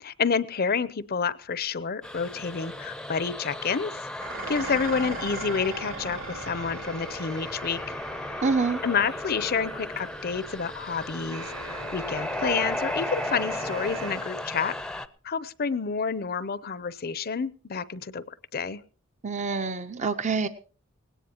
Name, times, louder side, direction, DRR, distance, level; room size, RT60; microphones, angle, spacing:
voice 1, 0.0-4.0 4.5-7.8 8.8-14.7 15.2-18.2 18.5-18.8, left 5 dB, 45° left, 16 dB, 0.6 m, -29 dB
sound 1, 2.0-15.1, left 1 dB, 5° left, 0.6 m, -35 dB
Dishes pots and pans, 4.2-13.0, right 3 dB, 70° right, 3.3 m, -41 dB
voice 2, 8.4-8.8 19.2-20.5, right 4 dB, 35° right, 10 dB, 0.6 m, -26 dB
sound 2, 11.3-14.3, right 2 dB, 85° right, 7.2 m, -41 dB
19.0 x 17.5 x 2.9 m, 0.38 s
head